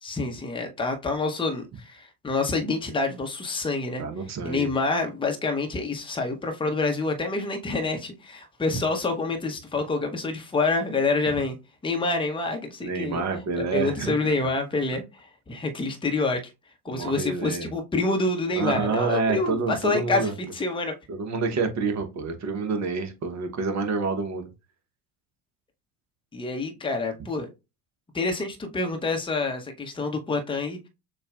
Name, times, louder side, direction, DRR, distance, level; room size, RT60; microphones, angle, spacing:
voice 1, 0.0-4.0 4.4-11.6 11.8-13.2 13.6-16.4 16.8-20.9 26.3-27.5 28.1-30.9, left 3 dB, 10° left, 0.8 m, -27 dB
voice 2, 4.0-4.7 12.8-14.4 16.9-17.7 18.5-20.3 21.1-24.5, right 4 dB, 35° right, 1.0 m, -28 dB
6.6 x 2.3 x 2.4 m
hypercardioid pair, 65°, 48 cm